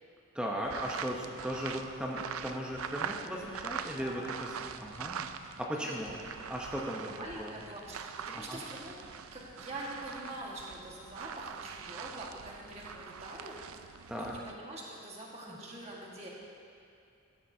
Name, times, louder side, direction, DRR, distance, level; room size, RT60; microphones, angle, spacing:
voice 1, 0.3-4.2 4.8-5.3 5.6-6.2 6.5-7.1 7.4-7.5 8.3-8.6 14.1-14.3 15.5-15.6, equal, 5° right, -2 dB, 0.8 m, -37 dB
sound 1, 0.6-5.7 6.0-14.5, right 7 dB, 90° right, 0.4 m, -43 dB
voice 2, 5.7-6.2 7.0-13.6 14.2-16.3, right 1 dB, 30° right, -4 dB, 1.6 m, -45 dB
14.5 x 12.0 x 2.8 m, 2.5 s
head